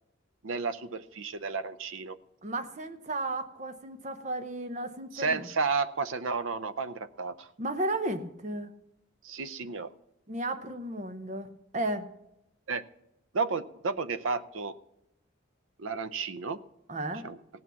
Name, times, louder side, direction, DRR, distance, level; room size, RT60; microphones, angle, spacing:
voice 1, 0.4-2.2 5.1-7.5 9.2-9.9 12.7-12.8 13.3-14.8 15.8-16.6 17.2-17.4, right 4 dB, 80° right, 13 dB, 0.7 m, -32 dB
voice 2, 2.4-5.4 7.6-8.7 10.3-12.1 16.9-17.3, right 1 dB, 35° right, 9 dB, 0.8 m, -34 dB
17.0 x 6.1 x 7.0 m, 0.86 s
head